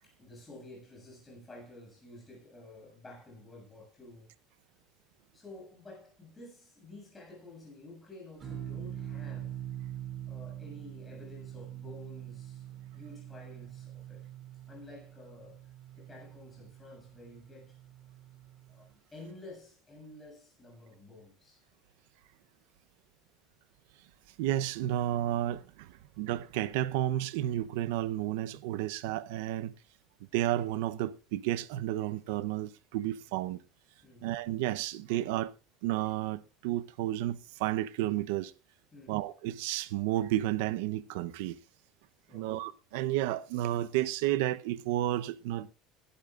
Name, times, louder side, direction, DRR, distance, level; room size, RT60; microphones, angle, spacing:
voice 1, 0.0-4.3 5.3-9.6 10.3-12.7 12.9-14.3 14.7-15.6 16.0-17.8 18.7-21.6 34.0-34.3 38.9-39.2 42.3-42.6, left 2 dB, 10° left, 7.3 m, -51 dB
sound 1, 8.4-18.9, right 11 dB, 25° right, 3.0 m, -44 dB
voice 2, 24.4-29.7 30.3-33.6 34.2-35.5 35.8-38.5 39.1-41.6 42.3-45.7, right 14 dB, 80° right, 0.8 m, -32 dB
21.0 x 12.5 x 2.5 m
cardioid pair, 175°, 0 cm